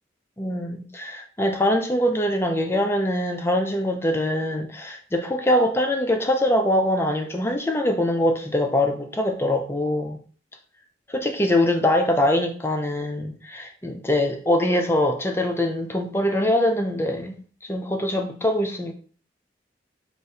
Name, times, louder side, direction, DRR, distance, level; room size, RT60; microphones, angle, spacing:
voice 1, 0.4-10.2 11.1-17.4 17.7-18.9, left 1 dB, 15° left, 4 dB, 0.4 m, -23 dB
4.0 x 2.5 x 3.9 m, 0.42 s
head